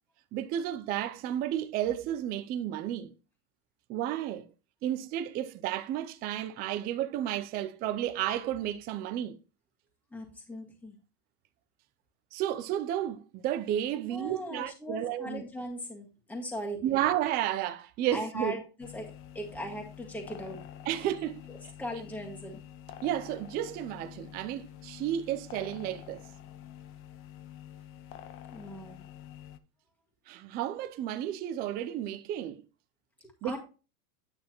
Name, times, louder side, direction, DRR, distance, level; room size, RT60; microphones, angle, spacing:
voice 1, 0.3-3.1 3.9-4.5 4.8-9.4 12.3-15.4 16.8-18.6 20.9-21.4 23.0-26.2 30.3-32.6 33.4-33.6, right 11 dB, 20° right, 0.4 m, -32 dB
voice 2, 10.1-11.0 14.1-16.8 18.1-20.6 21.5-22.6 28.5-29.0 33.2-33.6, equal, 5° left, 1.8 m, -39 dB
sound 1, 18.8-29.6, left 10 dB, 30° left, 0.5 m, -48 dB
9.5 x 6.2 x 3.0 m
supercardioid pair, 135°, 44 cm